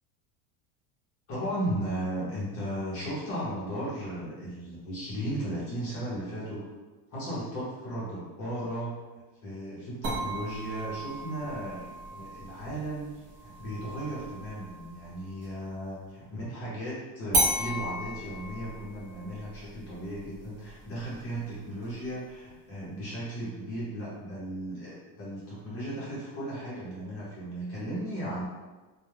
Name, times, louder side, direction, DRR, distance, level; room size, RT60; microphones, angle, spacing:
voice 1, 1.3-6.7 7.1-9.0 9.3-13.1 13.4-28.5, right 1 dB, 30° left, -8 dB, 0.7 m, -36 dB
sound 1, 10.0-15.6 17.3-22.3, right 1 dB, 25° right, 0.4 m, -35 dB
2.2 x 2.1 x 3.1 m, 1.2 s
cardioid pair, 180°, 46 cm